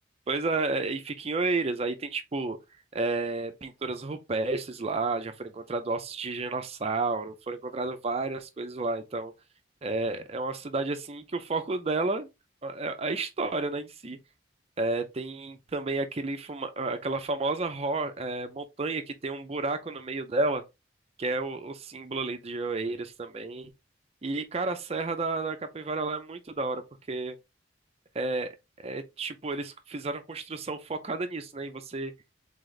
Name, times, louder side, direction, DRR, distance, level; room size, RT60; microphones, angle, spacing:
voice 1, 0.3-2.6 2.9-9.3 9.8-12.3 12.6-14.2 14.8-20.6 21.2-23.7 24.2-26.8 27.1-27.4 28.1-28.5 28.8-32.1, right 3 dB, 30° right, 0.5 m, -31 dB
3.9 x 3.4 x 3.2 m
head